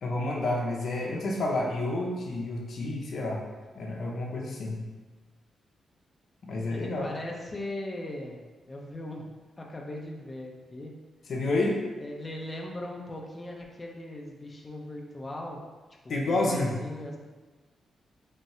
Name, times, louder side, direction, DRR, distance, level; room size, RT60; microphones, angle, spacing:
voice 1, 0.0-3.4 3.7-4.8 6.4-7.1 11.3-11.8 16.1-16.7, left 2 dB, 60° left, 0 dB, 0.7 m, -29 dB
voice 2, 6.7-8.4 8.7-10.9 12.0-15.6 16.0-17.2, left 1 dB, 25° left, -1 dB, 0.6 m, -39 dB
3.7 x 2.2 x 4.2 m, 1.3 s
cardioid pair, 115°, 0 cm